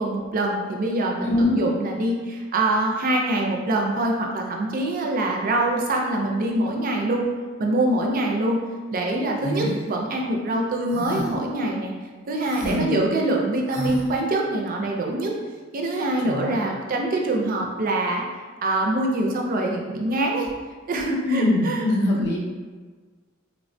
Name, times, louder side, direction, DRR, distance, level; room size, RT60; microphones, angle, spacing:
voice 1, 0.0-7.3 7.6-8.6 8.9-11.9 12.3-15.3 15.7-18.3 18.6-20.5 20.9-21.8 22.1-22.4, right 1 dB, 45° right, 0 dB, 0.4 m, -24 dB
voice 2, 1.2-1.6 12.6-13.1 16.2-16.6 21.2-22.4, left 1 dB, 55° left, -2 dB, 0.5 m, -23 dB
sound 1, 9.4-9.8 10.9-11.4 12.4-12.8 13.7-14.0, equal, 85° right, 0.6 m, -30 dB
3.1 x 2.1 x 2.6 m, 1.4 s
head